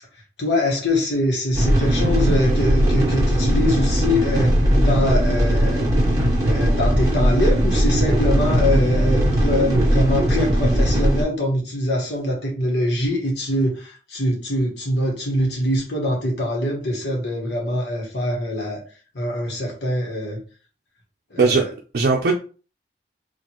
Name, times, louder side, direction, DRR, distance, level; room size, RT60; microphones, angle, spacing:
voice 1, 0.4-5.8 6.4-18.8 19.1-20.4 21.3-21.7, left 1 dB, 70° left, 1.2 m, -23 dB
sound 1, 1.5-11.2, equal, 20° right, 1.4 m, -19 dB
voice 2, 21.4-22.3, right 4 dB, 60° right, 0.5 m, -19 dB
4.5 x 2.5 x 2.9 m
head